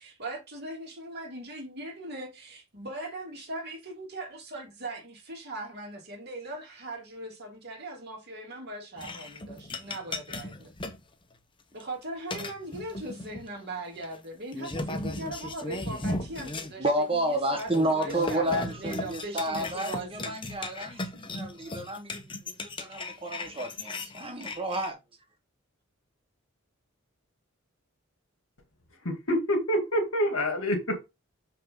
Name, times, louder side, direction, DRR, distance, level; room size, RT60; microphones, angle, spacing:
voice 1, 0.0-10.7 11.7-20.3, right 2 dB, 50° right, 3.1 m, -39 dB
sound 1, 9.0-11.0 11.7-12.0 12.3-13.5 14.0-14.2 14.5-16.7 17.0-17.1 17.4-24.9, left 2 dB, 25° left, 1.0 m, -37 dB
voice 2, 16.8-25.0, right 1 dB, 25° right, 1.2 m, -31 dB
voice 3, 29.0-31.0, equal, 65° left, 2.4 m, -27 dB
6.5 x 5.6 x 3.8 m
head